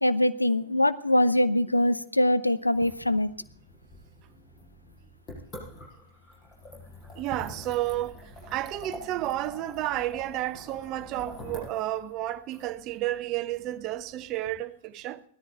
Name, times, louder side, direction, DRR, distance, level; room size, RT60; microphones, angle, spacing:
voice 1, 0.0-3.3, left 1 dB, 85° left, 0.7 m, -23 dB
sound 1, 2.6-14.5, left 1 dB, 25° left, 6.6 m, -46 dB
voice 2, 7.1-15.2, right 14 dB, 40° right, 0.8 m, -31 dB
17.0 x 13.0 x 4.4 m
figure-of-eight pair, 90°, 0 cm